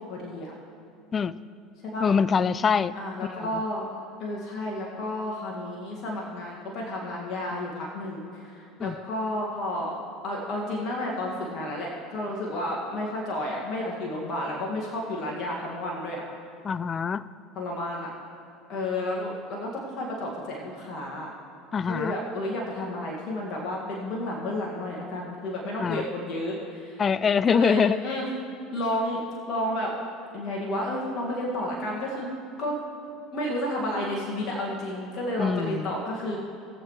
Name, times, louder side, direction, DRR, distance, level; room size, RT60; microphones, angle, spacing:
voice 1, 0.1-0.5 1.8-2.1 2.9-3.9 4.2-10.0 10.2-16.2 17.6-18.1 18.7-21.3 21.9-27.0 27.5-28.3 28.7-29.2 29.5-29.9 30.3-32.3 32.6-32.8 33.3-36.4, left 1 dB, 50° left, -2 dB, 1.9 m, -31 dB
voice 2, 2.0-3.0 3.5-3.6 8.8-9.0 16.6-17.2 21.7-22.1 25.8-26.0 27.0-28.0 35.4-35.9, left 6 dB, 35° left, 17 dB, 0.4 m, -24 dB
19.5 x 7.3 x 3.2 m, 2.7 s
hypercardioid pair, 75°, 0 cm